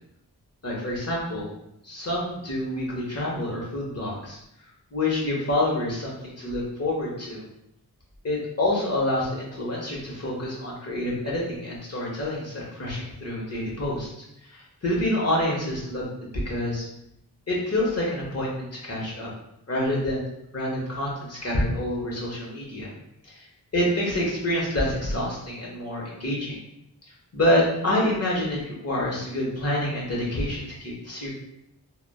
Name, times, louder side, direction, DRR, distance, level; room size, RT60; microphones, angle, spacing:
voice 1, 0.6-1.5 1.8-4.4 4.9-7.4 8.2-14.1 14.4-16.1 16.4-16.9 17.5-19.3 19.7-20.3 20.5-22.9 23.2-23.4 23.7-26.6 27.3-31.3, left 1 dB, 40° left, -4 dB, 1.1 m, -27 dB
3.2 x 2.1 x 2.3 m, 0.80 s
wide cardioid pair, 55°, 39 cm